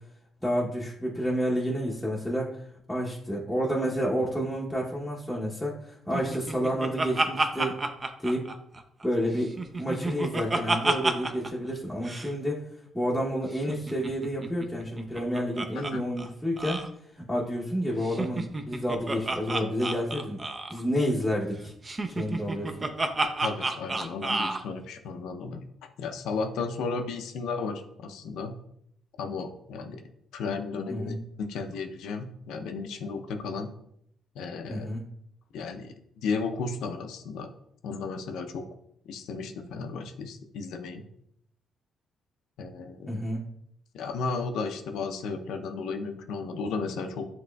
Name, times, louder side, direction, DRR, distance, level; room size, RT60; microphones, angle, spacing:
voice 1, 0.4-2.5 2.9-7.8 8.2-8.5 9.0-12.6 12.9-16.9 17.1-20.4 20.7-21.7 22.1-22.7 30.9-31.2 34.7-35.1 43.1-43.4, equal, 5° left, -6 dB, 0.8 m, -29 dB
Laughter, 6.1-9.1 9.4-11.5 11.8-11.9 12.0-12.3 13.5-15.9 16.2-16.3 16.6-16.9 18.0-20.8 21.8-24.6, right 2 dB, 30° right, 0.5 m, -30 dB
voice 2, 15.7-16.0 23.4-25.6 26.0-28.6 29.2-30.0 30.3-33.7 34.4-34.9 35.5-37.5 37.8-38.6 39.1-41.0 42.6-43.2 43.9-47.3, left 4 dB, 85° left, 5 dB, 0.5 m, -34 dB
7.5 x 3.0 x 2.3 m, 0.73 s
cardioid pair, 90°, 0 cm